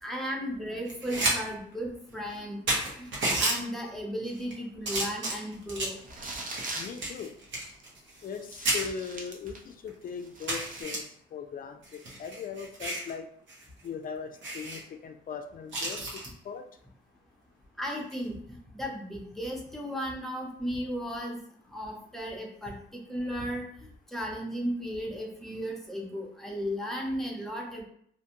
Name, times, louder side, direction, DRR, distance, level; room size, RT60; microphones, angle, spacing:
voice 1, 0.0-2.6 3.0-6.0 17.8-18.4 18.7-21.4 21.7-27.8, equal, ahead, -1 dB, 0.7 m, -35 dB
sound 1, 0.9-1.4 1.7-1.8 2.3-2.4 2.7-3.6 4.3-4.5 4.8-6.0 6.6-8.4 8.6-8.8 9.5-9.6 9.9-10.0 10.5-11.0 11.8-13.1 13.5-13.6 13.9-14.0 14.4-14.8 15.7-16.3 18.0-18.2, right 2 dB, 65° right, 1.0 m, -31 dB
sound 2, 6.0-7.0 7.8-7.9 8.5-9.7 10.1-10.8, right 2 dB, 40° right, 0.7 m, -40 dB
voice 2, 6.7-7.3 8.2-11.0 11.3-13.3 13.8-16.7, left 6 dB, 45° left, 7 dB, 0.4 m, -39 dB
2.5 x 2.2 x 2.9 m, 0.67 s
cardioid pair, 90°, 20 cm